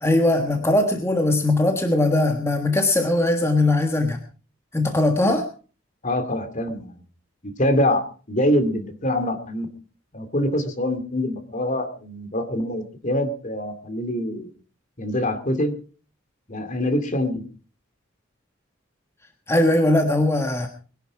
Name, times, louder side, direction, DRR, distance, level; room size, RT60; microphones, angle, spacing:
voice 1, 0.0-4.2 4.7-5.5 19.5-20.7, left 2 dB, 15° left, 5 dB, 1.4 m, -20 dB
voice 2, 6.0-6.9 7.4-9.7 10.1-14.5 15.0-15.7 16.5-17.4, left 1 dB, 40° left, 9 dB, 2.4 m, -24 dB
21.0 x 11.5 x 4.8 m, 0.38 s
head